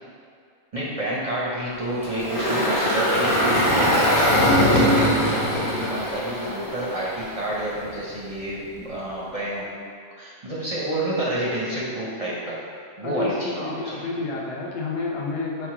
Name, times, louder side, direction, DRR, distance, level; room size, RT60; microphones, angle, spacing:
voice 1, 0.7-4.4 4.9-9.7 10.2-12.6 13.0-14.1, right 1 dB, 40° right, -7 dB, 0.6 m, -29 dB
Engine, 2.0-7.3, equal, 25° left, 0.5 m, -21 dB
voice 2, 13.0-15.7, left 3 dB, 65° left, -2 dB, 0.8 m, -30 dB
4.3 x 2.2 x 4.6 m, 2.2 s
omnidirectional pair, 1.2 m